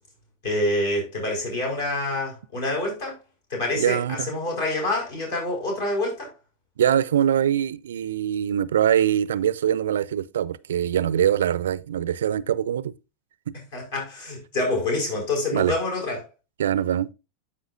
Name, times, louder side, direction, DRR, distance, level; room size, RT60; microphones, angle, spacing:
voice 1, 0.4-3.2 3.5-6.3 13.7-16.2, left 2 dB, 55° left, 4.9 m, -27 dB
voice 2, 3.7-4.3 6.8-12.9 13.5-13.6 15.5-15.7 16.6-17.1, right 10 dB, 60° right, 0.4 m, -23 dB
12.5 x 4.9 x 2.4 m
figure-of-eight pair, 90°, 0 cm